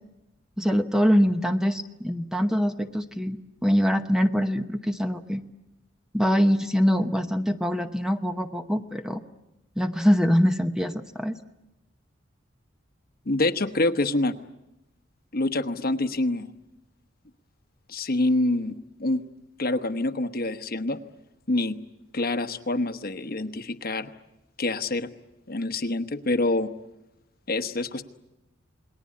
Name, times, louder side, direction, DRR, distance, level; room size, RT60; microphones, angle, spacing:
voice 1, 0.6-5.4 6.1-9.2 9.8-11.4, equal, 5° right, 7 dB, 0.9 m, -24 dB
voice 2, 13.3-14.3 15.3-16.5 17.9-19.2 19.6-21.0 21.5-21.8 22.1-24.1 24.6-25.1 25.5-26.7 27.5-28.0, left 2 dB, 50° left, 10 dB, 1.1 m, -26 dB
28.5 x 20.0 x 8.5 m, 0.92 s
head